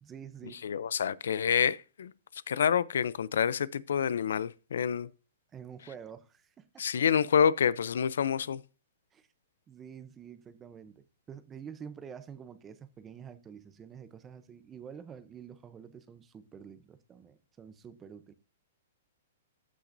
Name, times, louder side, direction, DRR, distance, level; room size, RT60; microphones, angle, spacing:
voice 1, 0.0-0.6 5.5-7.0 9.1-9.3 9.7-18.3, right 7 dB, 15° right, 0.7 m, -48 dB
voice 2, 0.6-2.1 2.5-5.1 6.8-8.6, left 7 dB, 85° left, 0.5 m, -27 dB
14.0 x 6.1 x 2.6 m
hypercardioid pair, 165°, 0 cm